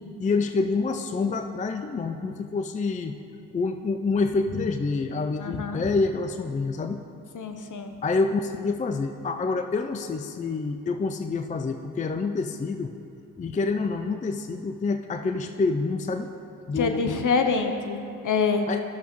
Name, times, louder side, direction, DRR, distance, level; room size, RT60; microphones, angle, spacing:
voice 1, 0.0-3.2 3.5-7.0 8.0-12.9 13.4-16.3 16.7-17.2 18.7-18.8, left 4 dB, 20° left, 7 dB, 0.4 m, -27 dB
voice 2, 5.4-5.8 7.3-7.9 16.8-18.7, left 4 dB, 50° left, 6 dB, 0.9 m, -26 dB
12.5 x 6.7 x 3.1 m, 2.6 s
hypercardioid pair, 45°, 40 cm